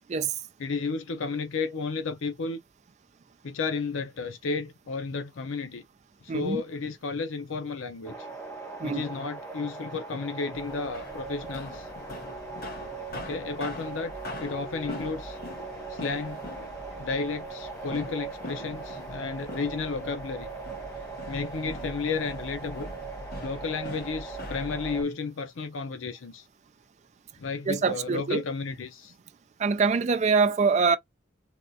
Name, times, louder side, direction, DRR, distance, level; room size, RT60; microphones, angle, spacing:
voice 1, 0.6-2.6 3.4-5.8 6.2-8.3 8.8-11.9 13.1-14.1 14.4-15.4 15.9-16.4 17.0-20.5 21.2-22.9 23.4-26.5 27.4-29.1, left 4 dB, 80° left, 0.5 m, -32 dB
voice 2, 6.3-6.6 8.8-9.0 27.7-28.4 29.6-31.0, right 5 dB, 35° right, 0.3 m, -24 dB
sound 1, 8.0-25.0, right 4 dB, 10° left, 0.9 m, -40 dB
sound 2, 10.5-25.0, left 1 dB, 50° left, 1.2 m, -43 dB
3.5 x 2.3 x 2.6 m
head